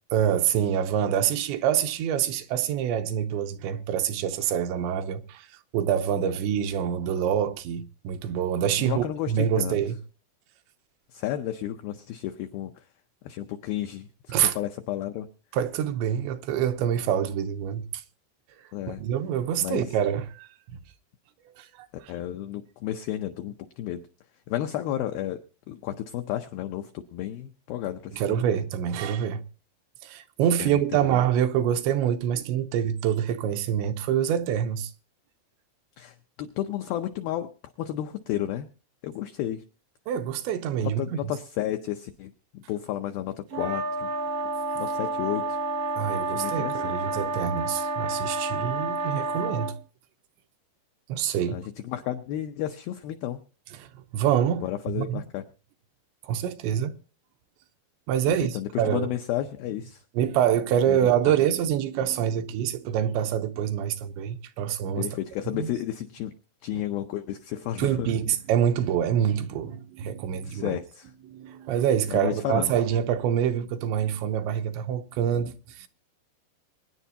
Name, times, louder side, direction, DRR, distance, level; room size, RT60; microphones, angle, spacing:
voice 1, 0.1-5.5 5.7-10.0 14.3-14.5 15.5-18.0 18.9-20.5 21.6-21.9 28.1-29.4 30.0-34.9 40.1-41.0 46.0-49.7 51.1-51.6 53.8-55.2 56.2-56.9 58.1-58.5 58.8-59.1 60.1-65.1 65.5-65.7 66.7-66.8 67.8-70.8 71.3-75.9, right 9 dB, 85° right, 3.1 m, -26 dB
voice 2, 8.8-9.8 11.1-12.7 13.2-14.1 14.4-15.3 18.7-19.0 19.6-19.9 22.1-24.0 24.5-28.4 30.6-31.2 36.0-38.7 39.0-39.6 40.8-44.1 44.8-45.6 46.3-46.9 51.5-53.4 54.6-55.4 58.5-60.0 60.9-61.3 65.0-66.3 66.6-68.1 70.4-71.1 72.1-72.7, left 12 dB, 90° left, 2.1 m, -32 dB
sound 1, 43.5-49.7, right 3 dB, 65° right, 1.5 m, -30 dB
24.0 x 10.0 x 2.8 m
omnidirectional pair, 5.2 m